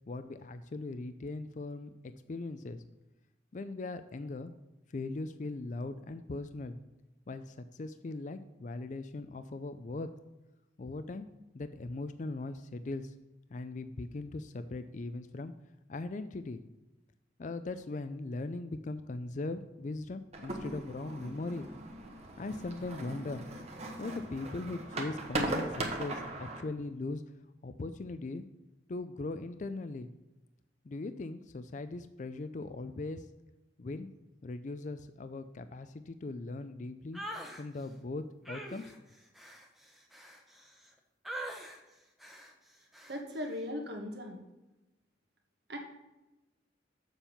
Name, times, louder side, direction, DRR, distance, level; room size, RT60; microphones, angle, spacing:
voice 1, 0.1-2.8 3.5-4.5 4.9-6.8 7.3-10.1 10.8-11.3 11.5-13.1 13.5-15.5 15.9-16.6 17.4-21.7 22.4-23.5 24.0-27.2 27.6-28.4 28.9-30.1 30.8-33.3 33.8-34.1 34.4-37.2 37.6-38.9, left 2 dB, 40° left, 10 dB, 0.4 m, -39 dB
sound 1, 20.3-26.6, right 2 dB, 35° right, 1.2 m, -38 dB
sound 2, 37.1-37.6 38.5-40.9 41.3-41.8 42.2-42.5 42.9-43.2, right 1 dB, ahead, 0.9 m, -44 dB
voice 2, 43.1-44.4 45.7-45.8, left 1 dB, 65° right, 2 dB, 1.6 m, -38 dB
7.2 x 5.4 x 7.0 m, 1.0 s
head